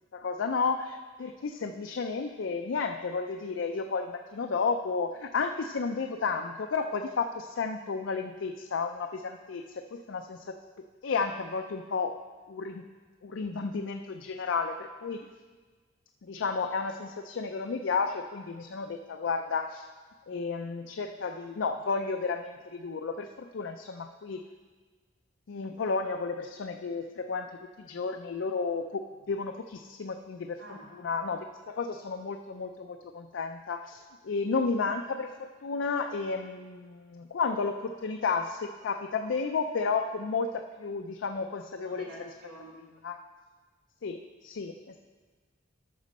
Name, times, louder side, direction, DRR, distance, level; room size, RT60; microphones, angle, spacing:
voice 1, 0.1-10.5 11.0-12.2 12.5-12.8 13.2-15.3 16.3-19.9 20.3-24.4 25.5-27.5 27.8-29.0 29.3-30.6 31.0-42.1 43.0-43.2 44.0-45.0, left 4 dB, 80° left, 5 dB, 0.4 m, -32 dB
voice 2, 30.6-30.9 41.8-42.8, right 1 dB, 80° right, -4 dB, 3.5 m, -47 dB
13.5 x 6.1 x 4.2 m, 1.4 s
head